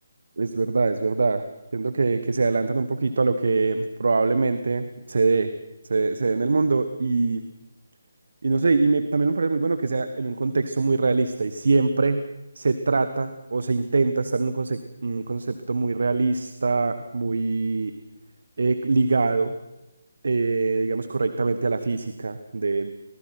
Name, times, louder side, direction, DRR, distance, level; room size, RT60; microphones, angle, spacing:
voice 1, 0.4-1.4 1.7-5.5 5.9-7.4 8.4-12.3 12.5-17.9 18.6-19.5 20.2-22.9, right 3 dB, 65° right, 10 dB, 1.4 m, -23 dB
25.0 x 19.5 x 6.0 m, 0.98 s
figure-of-eight pair, 150°, 0 cm